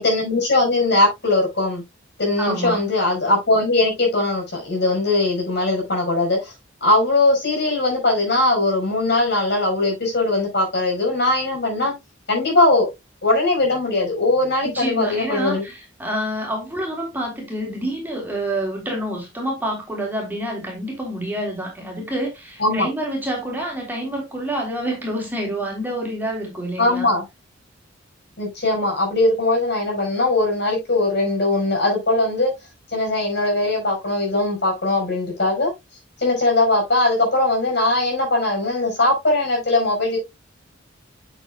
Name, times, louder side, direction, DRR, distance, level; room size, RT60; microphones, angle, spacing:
voice 1, 0.0-1.8 2.2-6.5 6.8-11.9 12.3-12.9 13.2-15.6 22.6-22.9 26.8-27.2 28.4-32.5 32.9-35.7 36.2-40.2, left 2 dB, 60° left, 5.1 m, -20 dB
voice 2, 2.4-2.8 14.6-27.1, right 1 dB, 10° right, 3.2 m, -27 dB
8.2 x 8.0 x 2.3 m
head